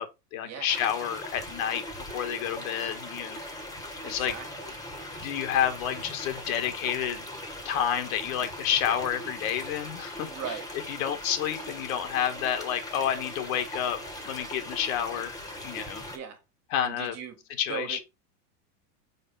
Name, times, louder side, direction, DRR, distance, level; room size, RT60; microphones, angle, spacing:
voice 1, 0.0-1.8 2.1-3.4 4.0-4.3 5.2-7.2 7.6-10.6 10.9-14.0 14.2-15.4 15.6-16.0 16.7-17.1 17.6-18.0, left 9 dB, 65° left, 1.6 m, -29 dB
sound 1, 0.7-16.2, left 1 dB, 10° left, 1.4 m, -40 dB
voice 2, 4.0-4.7 10.3-10.7 16.1-16.4 16.8-17.4 17.7-18.0, right 7 dB, 35° right, 1.8 m, -38 dB
4.8 x 4.4 x 5.5 m
supercardioid pair, 135°, 46 cm